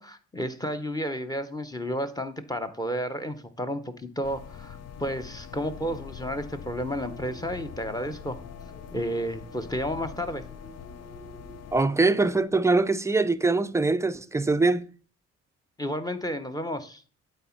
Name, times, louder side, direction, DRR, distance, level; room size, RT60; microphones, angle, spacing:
voice 1, 0.0-8.4 8.9-10.4 15.8-17.0, equal, 15° left, 0.7 m, -32 dB
sound 1, 4.2-11.8, left 7 dB, 55° left, 0.7 m, -43 dB
sound 2, 7.0-12.4, right 1 dB, 35° left, 2.4 m, -50 dB
voice 2, 11.7-14.8, right 3 dB, 10° right, 0.3 m, -23 dB
7.8 x 4.1 x 4.4 m
cardioid pair, 90°, 30 cm